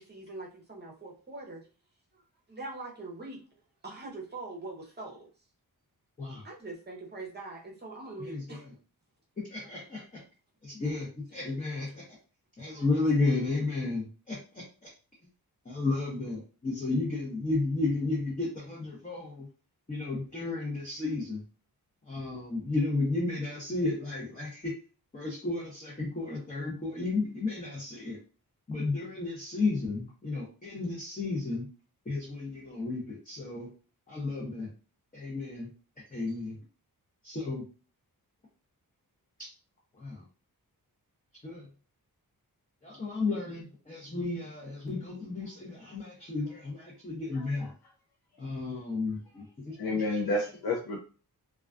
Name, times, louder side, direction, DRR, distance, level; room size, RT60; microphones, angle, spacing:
voice 1, 0.0-1.7 2.1-2.2 2.5-3.4 3.8-5.3 6.4-8.6 9.6-9.7 11.6-11.7 12.7-12.9, right 2 dB, 25° right, -2 dB, 0.7 m, -43 dB
voice 2, 8.2-8.6 9.5-10.2 10.6-12.0 12.6-14.9 15.6-19.5 19.9-21.4 22.1-24.7 25.1-28.2 28.7-31.7 32.1-33.7 34.1-34.7 35.1-35.7 36.1-36.6 37.2-37.6 39.4-39.5 40.0-40.2 41.4-41.7 42.8-47.7 48.4-49.8 50.1-50.2, left 3 dB, 20° left, -5 dB, 0.7 m, -33 dB
voice 3, 47.3-47.7 49.8-51.0, left 2 dB, 70° left, 0 dB, 0.5 m, -30 dB
2.3 x 2.2 x 2.4 m, 0.36 s
wide cardioid pair, 130°, 38 cm